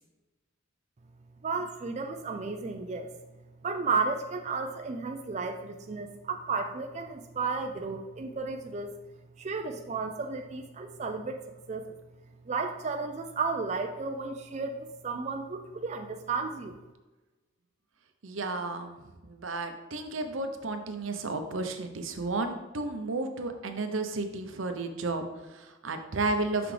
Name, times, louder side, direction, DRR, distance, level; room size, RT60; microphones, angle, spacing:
voice 1, 1.4-3.1 3.6-8.9 9.4-11.4 11.7-11.8 12.5-16.7, right 4 dB, 35° right, 3 dB, 0.4 m, -33 dB
voice 2, 18.2-26.7, right 3 dB, 75° right, 6 dB, 0.7 m, -33 dB
6.0 x 5.8 x 3.3 m, 1.2 s
head